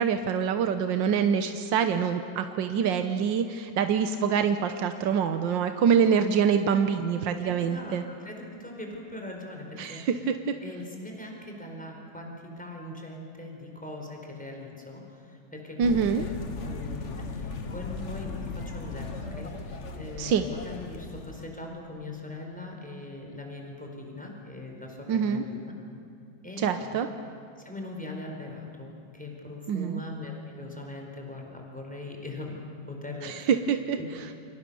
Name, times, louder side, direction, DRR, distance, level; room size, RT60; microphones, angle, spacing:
voice 1, 0.0-8.0 9.8-10.5 15.8-16.3 20.2-20.4 25.1-25.4 26.6-27.1 29.7-30.0 33.2-34.0, right 7 dB, 80° right, 8 dB, 1.7 m, -25 dB
voice 2, 7.4-10.3 10.6-16.3 16.6-25.7 26.4-27.0 27.6-32.6 32.9-33.5 34.0-34.1, left 2 dB, 5° left, 1 dB, 4.5 m, -41 dB
sound 1, 15.8-21.5, left 4 dB, 40° left, 1.6 m, -37 dB
29.5 x 25.5 x 7.0 m, 2.5 s
omnidirectional pair, 2.0 m